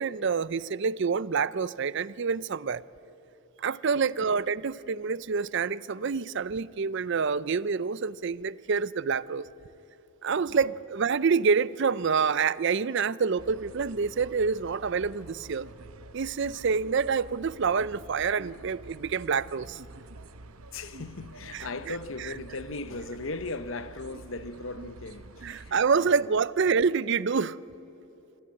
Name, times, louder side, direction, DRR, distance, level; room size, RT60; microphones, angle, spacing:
voice 1, 0.0-2.8 3.6-9.5 10.2-15.7 16.1-19.8 21.5-21.7 25.4-27.6, right 5 dB, 55° right, 0.5 m, -27 dB
voice 2, 4.0-4.3 10.4-10.8 20.7-26.5, left 3 dB, 65° left, 0.9 m, -38 dB
sound 1, 13.4-25.8, right 2 dB, 85° right, 1.0 m, -48 dB
25.5 x 13.5 x 9.7 m
head